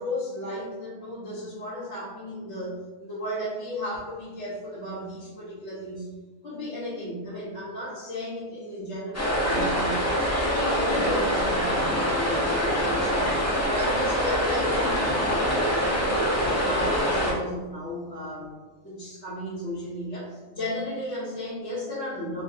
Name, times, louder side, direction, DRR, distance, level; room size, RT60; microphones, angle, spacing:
voice 1, 0.0-6.1 6.4-10.1 10.4-13.4 13.6-18.6 18.8-22.4, left 1 dB, 70° left, -11 dB, 1.2 m, -34 dB
sound 1, 9.1-17.3, equal, 20° left, 0.5 m, -24 dB
3.5 x 2.6 x 2.5 m, 1.2 s
omnidirectional pair, 1.3 m